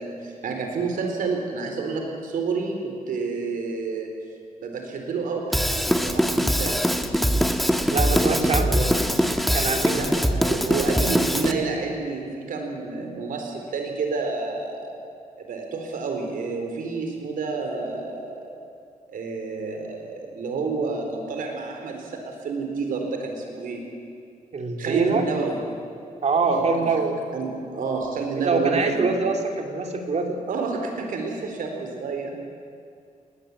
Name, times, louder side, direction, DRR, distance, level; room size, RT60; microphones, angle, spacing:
voice 1, 0.0-4.1 4.6-6.8 9.9-15.0 15.4-18.6 19.1-23.8 24.8-25.6 26.5-26.7 27.3-29.1 30.5-32.3, right 4 dB, 90° right, 3 dB, 4.1 m, -29 dB
Drum kit / Drum, 5.5-11.5, equal, ahead, 1.4 m, -22 dB
voice 2, 7.9-8.9 9.5-10.0 24.5-25.2 26.2-27.2 28.4-30.4, right 4 dB, 55° right, 4 dB, 2.8 m, -24 dB
20.0 x 19.5 x 8.6 m, 2.4 s
cardioid pair, 105°, 14 cm